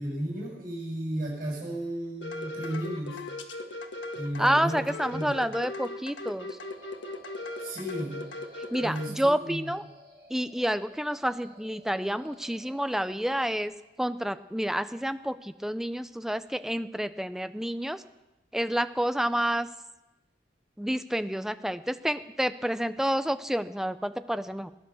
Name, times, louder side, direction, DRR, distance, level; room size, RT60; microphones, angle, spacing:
voice 1, 0.0-3.2 4.1-4.8 5.1-5.4 7.6-8.3 8.8-9.7, right 1 dB, 45° right, -6 dB, 6.7 m, -34 dB
sound 1, 2.2-9.1, left 2 dB, 85° left, 1.6 m, -38 dB
voice 2, 4.4-6.6 8.6-9.8 10.3-13.7 14.0-18.0 18.5-19.7 20.8-24.7, equal, ahead, 11 dB, 0.5 m, -29 dB
sound 2, 6.5-13.6, equal, 25° right, 5.2 m, -56 dB
19.0 x 11.0 x 7.0 m, 0.99 s
head